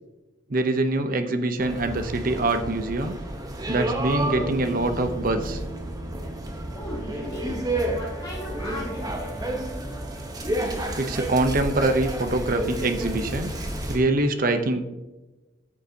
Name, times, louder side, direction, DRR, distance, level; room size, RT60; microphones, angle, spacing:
voice 1, 0.5-3.2 3.7-5.6 11.0-13.5 13.9-14.8, right 2 dB, 45° right, 7 dB, 0.7 m, -24 dB
sound 1, 1.6-14.0, right 1 dB, 20° right, 0.9 m, -31 dB
Bass guitar, 4.2-8.4, right 3 dB, 65° right, 2.7 m, -40 dB
Brass instrument, 6.4-10.7, right 5 dB, 80° left, 2.2 m, -45 dB
voice 2, 6.7-9.5, left 1 dB, 25° left, -7 dB, 2.0 m, -37 dB
13.5 x 6.7 x 2.8 m, 1.1 s
head